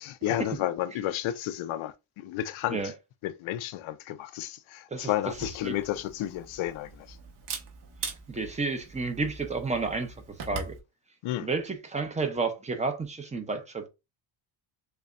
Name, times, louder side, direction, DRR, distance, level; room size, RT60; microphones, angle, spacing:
voice 1, 0.0-2.9 3.2-7.2 11.2-11.5, left 13 dB, 75° left, 0.6 m, -32 dB
voice 2, 4.9-5.3 5.6-5.8 8.3-10.1 10.5-10.7 11.4-13.9, right 4 dB, 15° right, 0.6 m, -31 dB
Camera, 5.3-10.8, right 4 dB, 55° right, 1.1 m, -42 dB
6.6 x 2.2 x 2.4 m
cardioid pair, 145°, 48 cm